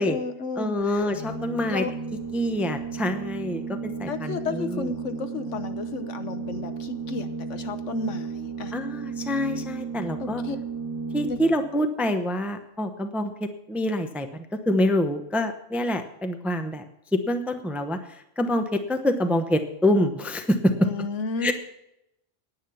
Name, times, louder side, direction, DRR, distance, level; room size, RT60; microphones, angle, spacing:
voice 1, 0.0-1.1 1.7-1.9 4.1-8.7 10.2-10.6 11.3-11.4 20.8-21.5, left 4 dB, 70° left, 9 dB, 1.3 m, -32 dB
voice 2, 0.6-1.8 2.3-4.9 8.7-10.4 11.1-16.8 17.1-18.0 18.4-20.9 21.4-21.5, left 1 dB, ahead, 7 dB, 0.7 m, -26 dB
Organ, 1.0-11.7, right 5 dB, 45° right, 2.8 m, -34 dB
9.9 x 9.6 x 6.9 m, 0.83 s
omnidirectional pair, 1.3 m